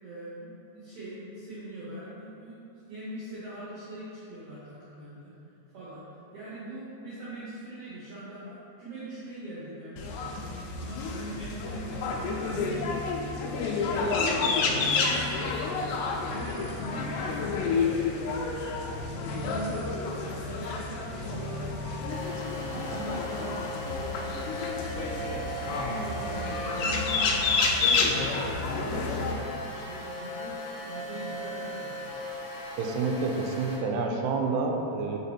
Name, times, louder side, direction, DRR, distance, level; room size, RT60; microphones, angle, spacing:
voice 1, 0.0-2.6 2.9-5.3 5.7-6.0 6.3-10.3 10.8-15.6 15.9-18.8 19.3-28.3 28.7-32.1, right 1 dB, 60° right, -10 dB, 2.0 m, -42 dB
sound 1, 10.0-29.3, left 4 dB, 90° left, 2.7 m, -30 dB
sound 2, 22.1-33.8, equal, 75° left, 1.8 m, -38 dB
voice 2, 32.8-35.2, right 4 dB, 90° right, 1 dB, 2.7 m, -28 dB
5.4 x 5.1 x 4.2 m, 2.8 s
omnidirectional pair, 4.8 m